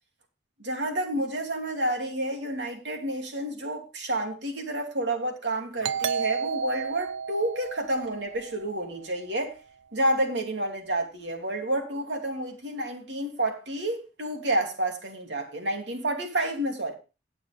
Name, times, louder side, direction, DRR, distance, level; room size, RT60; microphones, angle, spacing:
voice 1, 0.6-9.5 9.9-16.9, right 1 dB, 75° right, 2.9 m, -29 dB
Doorbell, 5.8-9.2, right 6 dB, 90° right, 0.5 m, -32 dB
19.0 x 6.5 x 3.5 m
head